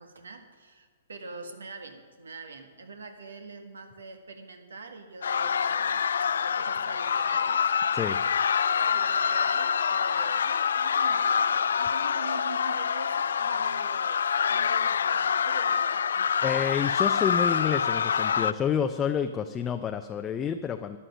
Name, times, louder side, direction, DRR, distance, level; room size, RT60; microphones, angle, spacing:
voice 1, 0.0-6.1 6.4-7.7 8.8-11.5 11.8-16.0, right 3 dB, 80° right, 6 dB, 1.7 m, -44 dB
sound 1, 5.2-18.5, left 7 dB, 70° left, 0.4 m, -26 dB
voice 2, 16.4-21.0, left 8 dB, 20° left, 6 dB, 0.6 m, -29 dB
12.5 x 10.0 x 6.3 m, 1.5 s
figure-of-eight pair, 120°, 0 cm